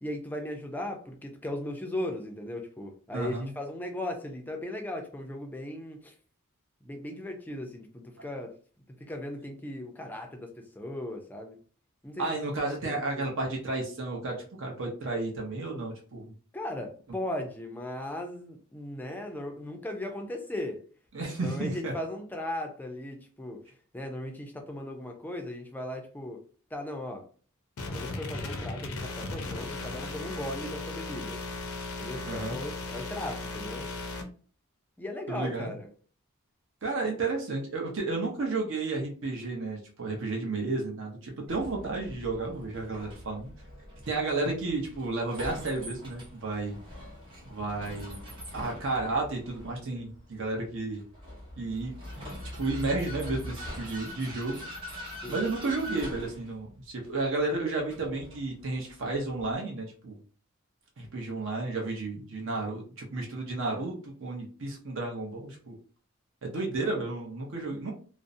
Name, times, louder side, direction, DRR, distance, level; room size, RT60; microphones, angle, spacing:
voice 1, 0.0-6.1 6.8-8.5 9.1-11.6 12.0-13.3 16.5-20.8 21.4-23.6 23.9-26.4 26.7-27.2 27.9-31.4 32.0-33.9 35.0-35.9 55.2-55.4, left 1 dB, 10° left, 3 dB, 0.4 m, -37 dB
voice 2, 3.1-3.5 12.2-16.3 21.1-21.9 32.3-32.6 35.3-35.7 36.8-43.5 44.1-46.8 47.5-48.2 48.5-51.0 51.6-51.9 52.6-54.6 55.3-60.1 61.0-65.8 66.4-67.9, right 3 dB, 60° right, 0 dB, 0.6 m, -32 dB
sound 1, 27.8-34.2, left 2 dB, 85° left, 0.5 m, -37 dB
Vehicle, 41.5-59.5, equal, 25° right, 0.8 m, -43 dB
2.5 x 2.0 x 2.5 m, 0.41 s
head